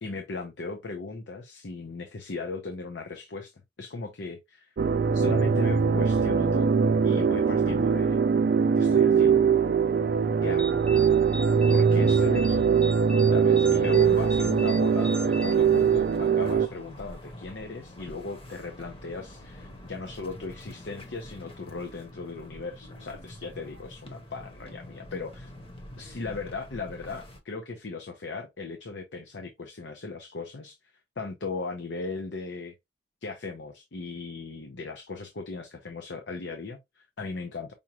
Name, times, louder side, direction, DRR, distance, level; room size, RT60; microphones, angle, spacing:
voice 1, 0.0-3.5 3.8-4.7 5.1-6.7 7.0-8.2 8.8-9.5 10.4-10.8 11.7-12.7 13.3-25.5 26.0-30.8 31.2-32.8 33.2-37.7, left 3 dB, 80° left, 0.7 m, -37 dB
sound 1, 4.8-16.7, right 6 dB, 55° right, 0.4 m, -22 dB
sound 2, 10.6-16.3, equal, 5° left, 0.4 m, -41 dB
sound 3, 13.8-27.4, left 1 dB, 30° left, 1.0 m, -46 dB
5.3 x 2.3 x 2.9 m
head